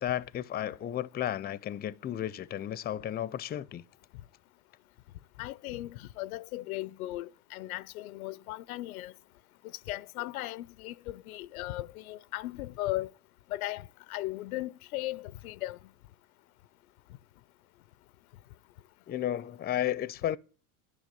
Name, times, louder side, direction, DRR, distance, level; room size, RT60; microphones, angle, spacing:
voice 1, 0.0-3.8 19.1-20.4, left 11 dB, 25° left, 0.5 m, -33 dB
voice 2, 5.4-9.1 9.9-13.1 13.5-15.8, left 17 dB, 90° left, 0.6 m, -37 dB
10.5 x 6.3 x 9.0 m
hypercardioid pair, 95°, 42 cm